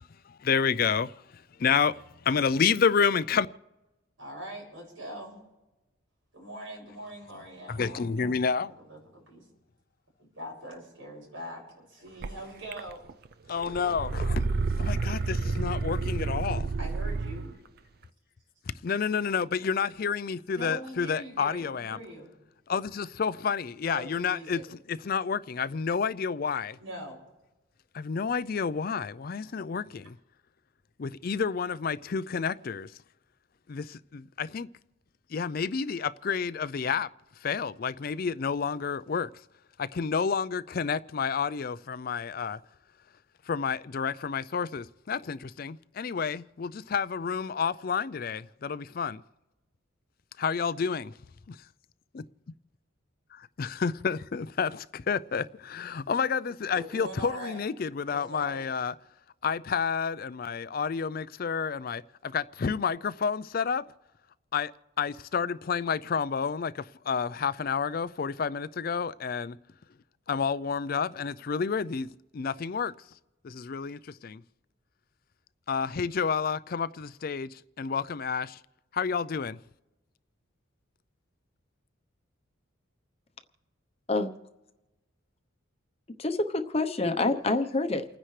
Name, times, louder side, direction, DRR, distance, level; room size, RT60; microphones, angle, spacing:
voice 1, 0.4-1.1 1.6-2.0 2.3-3.5 7.7-8.7 13.5-14.4 14.8-16.7 18.8-22.0 22.7-24.6 24.9-26.8 27.9-30.1 31.0-32.9 33.7-34.7 35.3-37.1 37.4-39.3 39.8-42.6 43.5-49.2 50.4-51.1 51.5-51.6 52.1-52.2 53.3-58.9 59.4-63.8 64.5-64.7 65.0-69.6 70.3-72.1 72.3-72.9 73.4-74.4 75.7-77.5 77.8-78.6 78.9-79.6, left 6 dB, 45° left, 0.4 m, -29 dB
voice 2, 4.2-5.4 6.3-9.5 10.3-13.0 15.3-15.4 16.8-17.5 20.5-22.3 23.9-24.6 26.8-27.2 56.7-57.6 58.1-58.7, right 1 dB, 75° right, 6.6 m, -42 dB
sound 1, 12.2-12.3 12.7-13.3 13.6-17.5, right 3 dB, 50° right, 0.4 m, -30 dB
voice 3, 86.2-88.0, left 2 dB, 30° left, 0.8 m, -27 dB
29.5 x 10.0 x 3.3 m
head